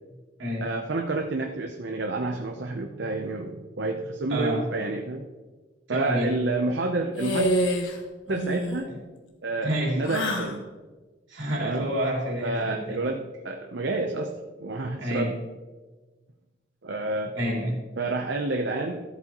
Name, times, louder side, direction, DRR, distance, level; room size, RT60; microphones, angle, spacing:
voice 1, 0.6-5.2 5.9-7.5 8.3-8.9 9.4-9.7 10.0-10.6 11.6-11.9 12.4-14.3 14.6-15.3 16.8-17.3 18.0-19.0, right 2 dB, 65° right, 3 dB, 0.7 m, -29 dB
voice 2, 4.3-4.6 5.9-6.4 8.8-8.9 9.6-10.0 11.3-13.1 14.9-15.3 17.3-17.8, equal, 80° right, -2 dB, 3.0 m, -28 dB
sound 1, 7.1-8.0 8.3-8.8 10.0-10.6, equal, 85° left, 1.4 m, -26 dB
14.0 x 8.0 x 3.0 m, 1.3 s
head